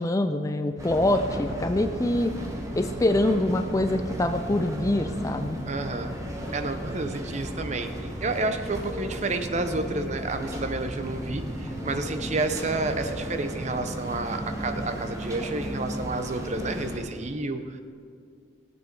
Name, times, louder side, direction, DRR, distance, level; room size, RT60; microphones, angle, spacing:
voice 1, 0.0-2.4 2.8-5.6, left 1 dB, 15° left, 8 dB, 0.3 m, -25 dB
sound 1, 0.8-17.0, right 1 dB, 15° right, 1.2 m, -34 dB
voice 2, 5.7-6.1 6.5-17.8, right 2 dB, 35° right, 8 dB, 0.7 m, -30 dB
17.0 x 8.2 x 4.6 m, 2.2 s
head